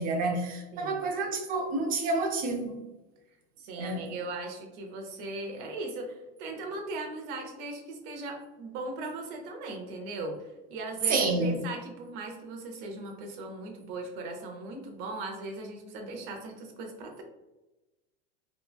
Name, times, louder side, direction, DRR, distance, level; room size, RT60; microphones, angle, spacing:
voice 1, 0.0-2.7 3.8-4.1 11.1-11.6, right 3 dB, 30° right, 4 dB, 0.4 m, -29 dB
voice 2, 0.7-1.0 3.6-17.2, right 2 dB, 60° right, 3 dB, 0.7 m, -38 dB
3.0 x 2.2 x 2.2 m, 1.0 s
supercardioid pair, 140°, 32 cm